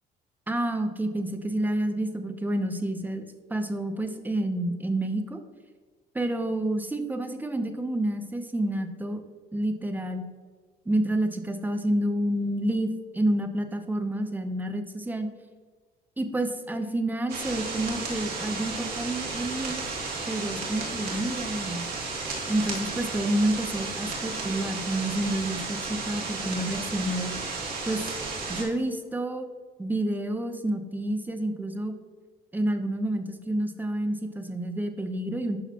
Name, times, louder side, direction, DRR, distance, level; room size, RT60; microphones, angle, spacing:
voice 1, 0.5-3.2 3.5-5.4 6.1-9.2 9.5-10.2 10.9-15.3 16.2-19.8 20.3-21.9 22.5-27.3 27.9-28.1 28.5-29.5 29.8-31.9 32.5-35.6, right 1 dB, 10° right, 7 dB, 0.7 m, -29 dB
sound 1, 17.3-28.6, right 3 dB, 65° right, 2.1 m, -33 dB
11.5 x 4.0 x 2.9 m, 1.5 s
cardioid pair, 110°, 17 cm